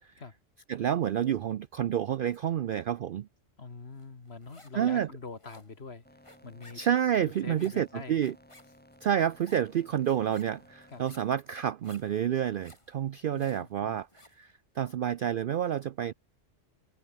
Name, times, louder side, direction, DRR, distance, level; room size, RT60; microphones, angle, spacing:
voice 1, 0.7-3.3 4.8-5.1 6.8-8.3 9.0-14.1 14.4-16.1, right 10 dB, 60° right, 0.5 m, -29 dB
voice 2, 3.6-6.8 7.2-8.2 10.9-11.0 13.3-14.0, left 4 dB, 55° left, 2.3 m, -44 dB
sound 1, 4.0-4.9 5.1-14.5, left 1 dB, 25° left, 3.5 m, -57 dB
sound 2, 6.0-11.0, left 1 dB, 5° left, 2.7 m, -58 dB
open air
omnidirectional pair, 1.3 m